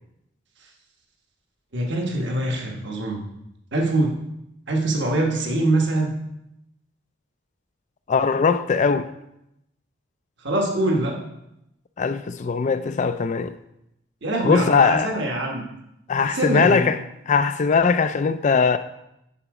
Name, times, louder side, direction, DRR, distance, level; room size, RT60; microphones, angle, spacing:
voice 1, 1.7-3.2 3.7-4.1 4.7-6.1 10.4-11.2 14.2-15.7 16.2-16.9, right 2 dB, 55° right, 1.3 m, -23 dB
voice 2, 8.1-9.1 12.0-13.6 14.4-15.2 16.1-17.0 17.3-18.8, left 5 dB, 35° left, 0.3 m, -20 dB
9.9 x 5.0 x 4.8 m
head